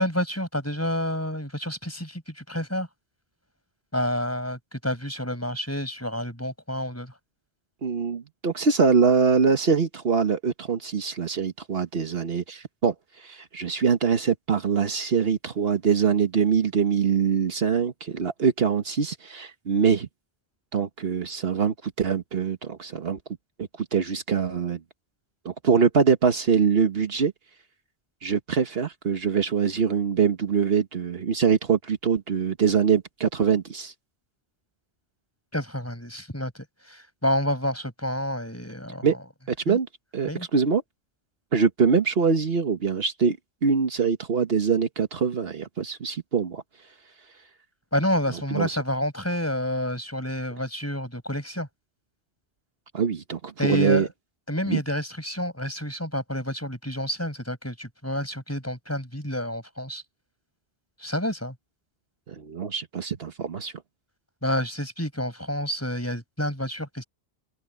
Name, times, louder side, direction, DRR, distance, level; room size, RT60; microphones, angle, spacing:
voice 1, 0.0-2.9 3.9-7.1 35.5-36.5 36.9-39.1 39.7-39.8 40.3-40.5 47.9-51.7 53.6-54.1 54.5-60.0 61.0-61.5 64.4-67.0, left 1 dB, 15° left, 4.9 m, -29 dB
voice 2, 7.8-20.1 20.7-23.2 23.6-24.8 25.4-27.3 28.2-33.9 39.0-39.1 39.5-39.9 40.1-40.8 41.5-43.4 43.6-46.6 48.3-48.8 52.9-54.1 54.7-54.8 62.3-63.7, right 6 dB, 70° right, 1.4 m, -23 dB
open air
omnidirectional pair, 1.1 m